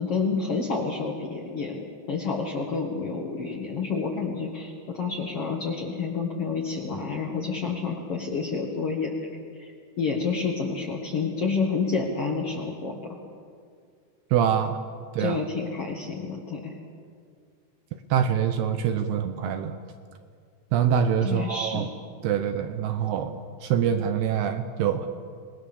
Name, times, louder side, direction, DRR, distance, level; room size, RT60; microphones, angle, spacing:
voice 1, 0.0-9.3 9.6-9.7 10.0-12.9 15.2-16.7 21.2-21.9, left 4 dB, 75° left, -1 dB, 1.3 m, -29 dB
voice 2, 14.3-14.8 15.1-15.4 18.1-19.8 20.7-21.9 22.2-25.1, right 8 dB, 80° right, 9 dB, 2.3 m, -25 dB
26.0 x 20.5 x 7.1 m, 2.1 s
omnidirectional pair, 5.7 m